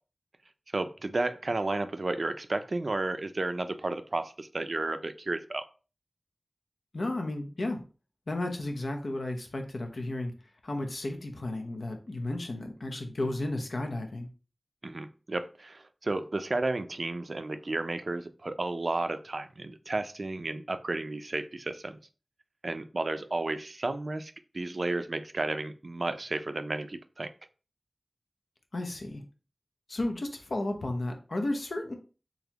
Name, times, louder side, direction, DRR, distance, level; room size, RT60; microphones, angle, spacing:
voice 1, 0.7-5.6 14.8-22.0 22.6-27.3, right 2 dB, 65° right, 10 dB, 0.4 m, -32 dB
voice 2, 6.9-7.8 8.3-10.3 10.6-14.3 28.7-29.2 29.9-31.9, left 1 dB, 85° left, 4 dB, 0.7 m, -33 dB
4.0 x 3.0 x 2.9 m, 0.35 s
wide cardioid pair, 40°, 0 cm